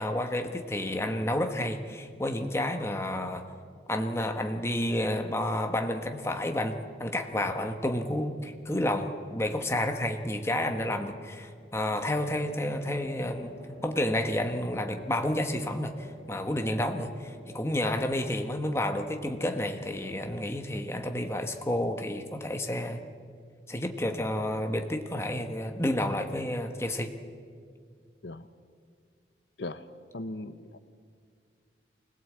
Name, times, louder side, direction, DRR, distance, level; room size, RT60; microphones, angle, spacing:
voice 1, 0.0-3.4 3.9-13.5 13.8-23.0 23.7-27.1, left 1 dB, 15° left, 5 dB, 1.2 m, -30 dB
sound 1, 8.4-8.9 11.5-22.8, left 1 dB, 35° left, 7.9 m, -50 dB
voice 2, 30.1-30.8, left 2 dB, 75° left, 12 dB, 0.8 m, -38 dB
24.5 x 17.5 x 8.5 m, 2.1 s
head